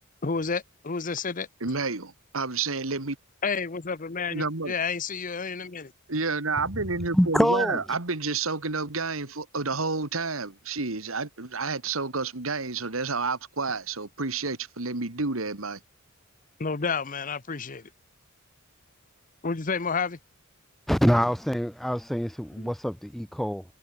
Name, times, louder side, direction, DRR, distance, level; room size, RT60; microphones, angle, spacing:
voice 1, 0.2-1.5 3.4-5.9 16.6-17.8 19.4-20.2 22.6-22.7, left 5 dB, 40° left, 0.9 m, -30 dB
voice 2, 1.6-3.2 4.3-4.7 6.1-15.8, right 4 dB, 85° right, 2.3 m, -30 dB
voice 3, 7.1-7.8 20.9-23.6, equal, ahead, 0.3 m, -25 dB
head